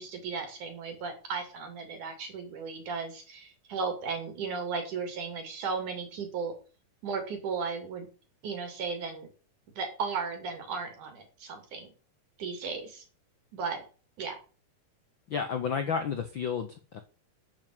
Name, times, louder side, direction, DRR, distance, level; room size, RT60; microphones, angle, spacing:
voice 1, 0.0-6.5 7.0-8.1 8.4-9.3 9.8-11.9 12.4-13.0 13.5-13.8 14.2-14.3, right 5 dB, 70° right, 5 dB, 4.4 m, -35 dB
voice 2, 15.3-17.0, left 6 dB, 65° left, 8 dB, 1.2 m, -31 dB
9.6 x 7.5 x 8.0 m, 0.37 s
omnidirectional pair, 3.7 m